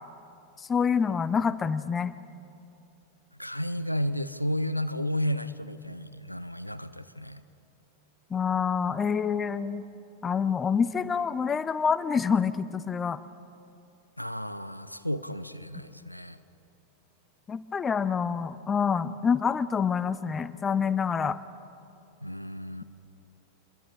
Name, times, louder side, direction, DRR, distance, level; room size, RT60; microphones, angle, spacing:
voice 1, 0.7-2.1 8.3-9.8 10.2-13.2 17.5-21.4, left 6 dB, 20° left, 15 dB, 0.7 m, -27 dB
voice 2, 3.4-7.4 14.2-16.4 22.2-22.8, left 1 dB, 90° left, 12 dB, 0.7 m, -32 dB
27.5 x 22.0 x 4.9 m, 2.6 s
figure-of-eight pair, 90°, 0 cm